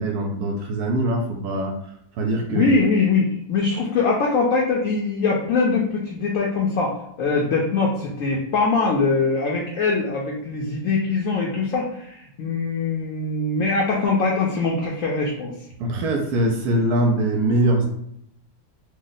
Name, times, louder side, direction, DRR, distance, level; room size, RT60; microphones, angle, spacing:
voice 1, 0.0-1.8 2.2-2.7 15.8-17.9, right 1 dB, 75° right, 2 dB, 1.1 m, -22 dB
voice 2, 2.5-15.5, left 4 dB, 70° left, -2 dB, 0.8 m, -22 dB
3.0 x 2.1 x 3.9 m, 0.73 s
omnidirectional pair, 1.7 m